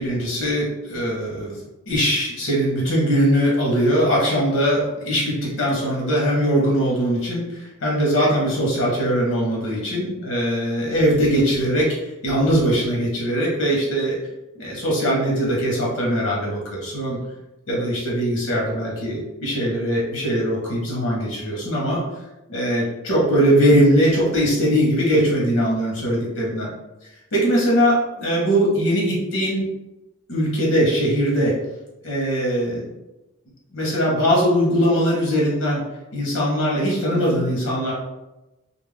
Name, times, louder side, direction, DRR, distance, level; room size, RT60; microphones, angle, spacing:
voice 1, 0.0-1.5 1.9-14.2 14.5-17.2 17.7-22.0 22.5-26.7 27.3-29.6 30.3-31.6 32.0-32.8 33.7-35.8 36.1-37.9, equal, 90° left, -4 dB, 0.9 m, -21 dB
2.4 x 2.0 x 3.3 m, 0.99 s
head